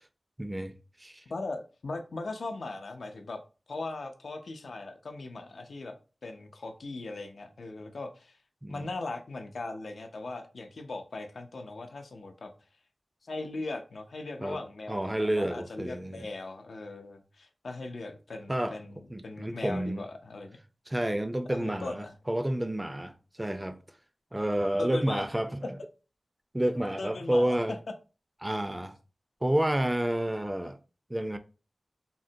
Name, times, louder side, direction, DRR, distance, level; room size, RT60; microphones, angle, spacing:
voice 1, 0.4-0.7 1.0-1.2 8.6-8.9 14.4-14.6 14.9-16.3 18.5-18.7 19.1-20.0 20.9-23.8 24.3-25.6 26.5-27.7 28.4-28.9 29.4-30.8 31.1-31.4, right 1 dB, 20° right, 0.3 m, -29 dB
voice 2, 1.3-3.4 3.7-5.9 6.2-8.4 8.7-12.5 13.2-20.6 21.5-22.1 24.8-25.2 27.0-27.6, left 2 dB, 90° left, 0.4 m, -39 dB
3.6 x 2.1 x 2.6 m
wide cardioid pair, 55°, 0 cm